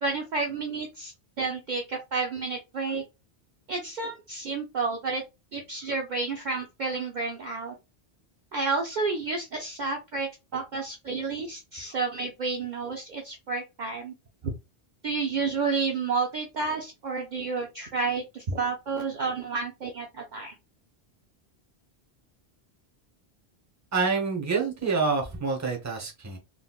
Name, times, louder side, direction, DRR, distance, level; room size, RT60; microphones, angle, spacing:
voice 1, 0.0-3.0 3.7-5.2 5.5-7.7 8.5-14.1 15.0-20.5, right 4 dB, 55° right, 1 dB, 0.6 m, -30 dB
voice 2, 23.9-26.4, right 4 dB, 20° right, 1 dB, 0.7 m, -27 dB
3.9 x 2.1 x 2.3 m, 0.25 s
omnidirectional pair, 1.1 m